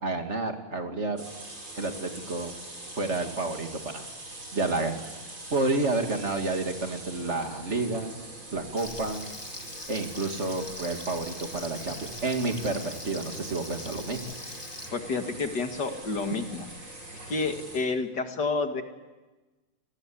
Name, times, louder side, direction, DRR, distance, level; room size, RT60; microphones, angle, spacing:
voice 1, 0.0-1.2 1.8-2.5 3.0-4.1 4.5-5.0 5.5-8.1 8.5-9.2 9.9-14.2, right 3 dB, 30° right, 5 dB, 2.6 m, -30 dB
sound 1, 1.2-17.8, right 2 dB, 70° right, 7.1 m, -43 dB
Frying (food), 8.8-14.9, left 1 dB, 10° left, 1.9 m, -43 dB
voice 2, 14.9-16.7 17.3-18.8, left 4 dB, 50° left, 6 dB, 2.6 m, -29 dB
28.5 x 19.5 x 8.7 m, 1.2 s
omnidirectional pair, 2.4 m